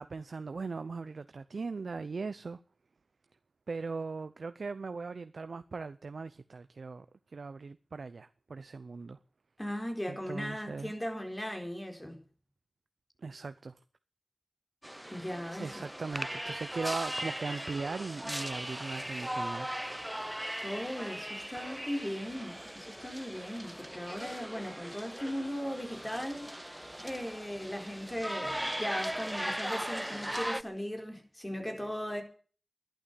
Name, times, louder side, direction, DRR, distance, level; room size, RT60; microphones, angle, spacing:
voice 1, 0.0-2.6 3.7-7.1 7.3-9.2 10.1-10.9 13.2-13.7 15.6-19.7, right 4 dB, 90° right, 0.6 m, -39 dB
voice 2, 9.6-12.2 15.1-15.8 20.6-26.5 27.0-32.2, equal, 20° left, 4.2 m, -38 dB
sound 1, 14.8-30.6, equal, 10° right, 0.7 m, -39 dB
11.5 x 11.5 x 8.3 m
wide cardioid pair, 55°, 0 cm